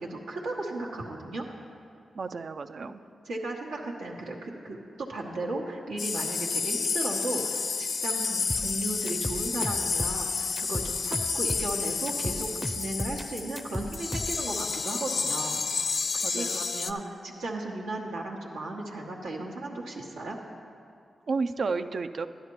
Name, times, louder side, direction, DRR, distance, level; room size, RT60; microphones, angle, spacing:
voice 1, 0.0-1.5 2.8-2.9 3.2-15.6 16.1-20.4, right 2 dB, 90° right, -3 dB, 1.1 m, -35 dB
voice 2, 2.1-3.0 16.2-16.7 21.3-22.3, right 4 dB, 65° right, 9 dB, 0.4 m, -32 dB
sound 1, 6.0-16.9, left 5 dB, 65° left, 0.4 m, -30 dB
sound 2, 8.5-14.5, left 1 dB, 10° left, 0.5 m, -35 dB
11.5 x 10.5 x 3.1 m, 2.4 s
supercardioid pair, 45°, 0 cm